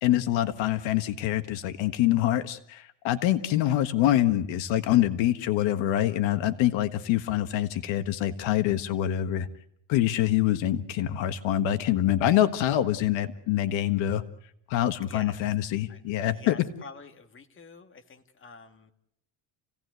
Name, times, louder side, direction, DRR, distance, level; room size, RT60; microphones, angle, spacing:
voice 1, 0.0-9.5 9.9-14.2 14.7-16.6, left 12 dB, 80° left, 10 dB, 1.6 m, -25 dB
voice 2, 15.0-15.4 15.9-16.0 16.3-18.9, left 4 dB, 25° left, 6 dB, 1.9 m, -47 dB
29.0 x 17.5 x 8.1 m, 0.74 s
cardioid pair, 165°, 45 cm